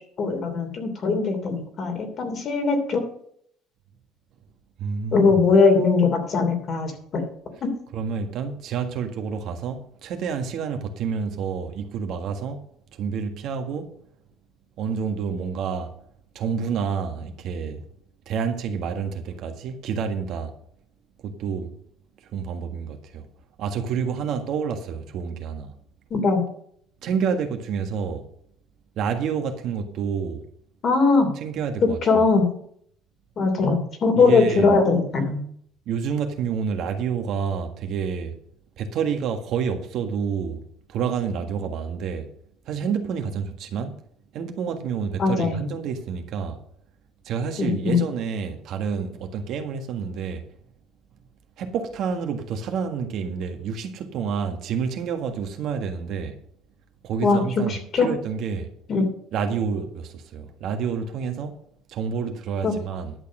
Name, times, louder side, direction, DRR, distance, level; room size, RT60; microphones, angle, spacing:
voice 1, 0.2-3.0 5.1-7.3 7.6-7.7 26.1-26.4 30.8-31.3 31.8-32.4 33.4-35.4 45.2-45.7 47.6-48.0 57.2-58.1 58.9-59.1 62.6-62.7, left 4 dB, 40° left, 2.9 m, -20 dB
voice 2, 4.8-5.3 7.9-12.6 12.9-13.9 14.8-15.9 16.3-17.8 18.2-20.5 21.2-21.7 22.3-23.3 23.6-25.7 27.0-28.3 28.9-30.5 31.4-32.2 34.1-34.7 35.8-38.4 38.8-42.3 42.6-44.0 44.3-46.6 47.2-50.4 51.6-56.4 57.0-58.7 59.3-61.6 61.9-63.1, right 6 dB, 60° right, 1.7 m, -28 dB
11.0 x 6.7 x 6.2 m
cardioid pair, 140°, 0 cm